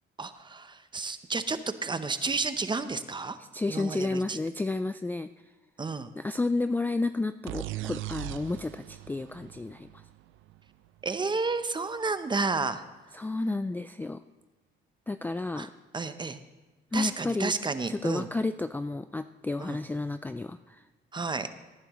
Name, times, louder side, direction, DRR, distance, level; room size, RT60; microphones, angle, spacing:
voice 1, 0.2-3.4 3.7-4.4 5.8-6.1 11.0-12.8 15.6-15.7 15.9-16.4 16.9-18.3 19.6-19.8 21.1-21.5, right 4 dB, 25° right, 11 dB, 0.8 m, -31 dB
voice 2, 3.5-5.3 6.2-9.9 13.1-14.2 15.1-15.7 16.9-17.5 17.9-20.8, left 2 dB, 10° left, 10 dB, 0.3 m, -31 dB
sound 1, 7.5-11.1, right 16 dB, 80° right, 0.5 m, -39 dB
18.0 x 10.5 x 3.1 m, 1.2 s
cardioid pair, 90°, 20 cm